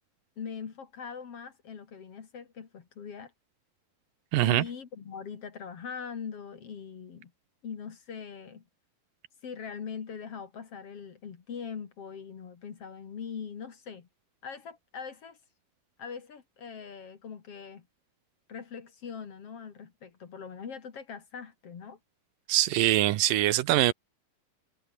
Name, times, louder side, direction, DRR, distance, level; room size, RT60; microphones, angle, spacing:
voice 1, 0.4-3.3 4.4-7.3 7.6-8.6 9.4-14.1 14.4-15.4 16.0-17.9 18.5-22.0, left 6 dB, 45° left, 2.7 m, -41 dB
voice 2, 4.3-4.6 22.5-23.9, right 15 dB, 75° right, 2.5 m, -23 dB
omnidirectional pair, 4.1 m